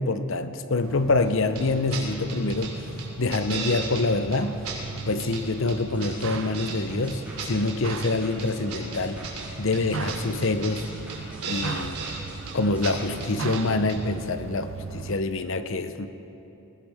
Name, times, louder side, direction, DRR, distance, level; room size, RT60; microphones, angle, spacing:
voice 1, 0.0-2.8 3.2-4.6 5.1-9.2 9.6-10.8 11.4-12.0 12.5-16.1, left 3 dB, 60° left, 10 dB, 0.7 m, -26 dB
sound 1, 0.8-15.2, right 4 dB, 60° right, 0.5 m, -38 dB
sound 2, 1.5-1.6 1.9-2.0 2.3-2.7 3.0-4.0 4.3-4.4 4.6-5.4 5.7-6.8 7.1-8.1 8.4-9.4 9.7-9.8 10.1-10.2 10.4-10.8 11.1-11.2 11.4-12.2 12.5-12.6 12.8-12.9 13.2-13.6 13.9-14.0, right 5 dB, 85° right, 2.9 m, -35 dB
sound 3, 5.9-13.3, right 1 dB, 5° right, 3.8 m, -48 dB
21.5 x 16.5 x 3.5 m, 2.9 s
head